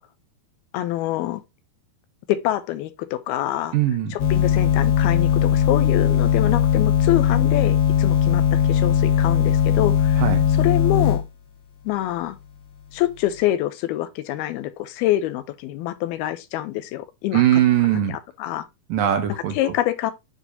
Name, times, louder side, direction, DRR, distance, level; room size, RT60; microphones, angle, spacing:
voice 1, 0.7-1.4 2.3-3.8 4.1-11.2 11.9-12.4 12.9-17.6 18.1-18.7 19.5-20.1, left 14 dB, 90° left, 2.6 m, -26 dB
voice 2, 3.7-4.1 10.2-10.4 17.3-18.2 18.9-19.7, right 11 dB, 70° right, 2.4 m, -20 dB
sound 1, 4.2-11.2, left 9 dB, 60° left, 2.1 m, -19 dB
9.2 x 4.5 x 2.8 m
omnidirectional pair, 4.4 m